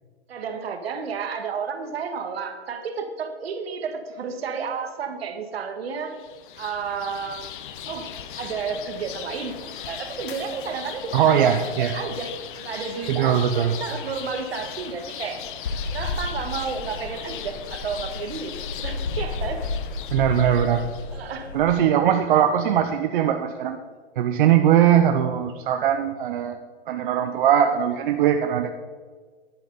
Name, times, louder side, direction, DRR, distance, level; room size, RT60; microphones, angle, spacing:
voice 1, 0.3-6.2 6.6-7.6 7.9-9.6 9.8-12.3 12.6-15.4 15.9-19.6 21.1-21.5, right 5 dB, 70° right, 6 dB, 1.6 m, -32 dB
sound 1, 6.1-21.2, left 10 dB, 50° left, 0.9 m, -38 dB
voice 2, 11.1-11.9 13.1-13.8 20.1-20.9 21.5-23.8 24.2-26.6 26.9-28.7, right 9 dB, 55° right, 6 dB, 0.7 m, -20 dB
sound 2, 15.7-21.7, left 3 dB, 85° left, 1.2 m, -32 dB
10.5 x 8.9 x 4.0 m, 1.5 s
hypercardioid pair, 130°, 32 cm